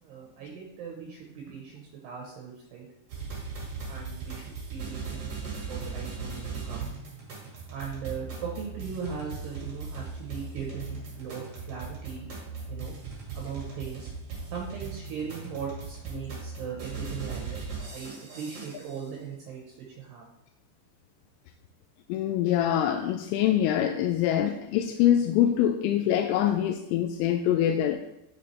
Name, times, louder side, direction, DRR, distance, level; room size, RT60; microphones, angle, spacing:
voice 1, 0.0-2.9 3.9-5.4 5.7-6.9 7.7-12.3 12.7-12.9 13.4-14.1 14.5-17.6 17.9-19.6 20.0-20.2, right 6 dB, 75° right, -2 dB, 2.7 m, -39 dB
sound 1, 3.1-19.0, right 4 dB, 45° right, 2.2 m, -38 dB
voice 2, 22.1-28.0, left 10 dB, 90° left, 5 dB, 3.1 m, -24 dB
7.0 x 6.8 x 3.2 m, 0.90 s
omnidirectional pair, 5.5 m